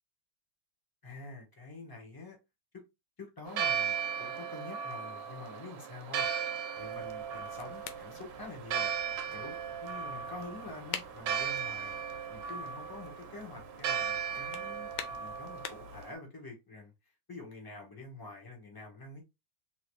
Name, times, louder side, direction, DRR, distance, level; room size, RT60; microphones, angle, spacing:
voice 1, 1.0-2.4 2.7-2.8 3.2-6.3 6.7-8.9 9.3-9.6 9.8-11.9 12.3-16.9 17.3-19.2, left 3 dB, 20° left, 0.7 m, -47 dB
Church bell, 3.5-16.1, right 7 dB, 70° right, 1.2 m, -36 dB
sound 1, 6.7-16.0, left 8 dB, 75° left, 1.3 m, -48 dB
3.1 x 3.0 x 3.0 m
omnidirectional pair, 2.3 m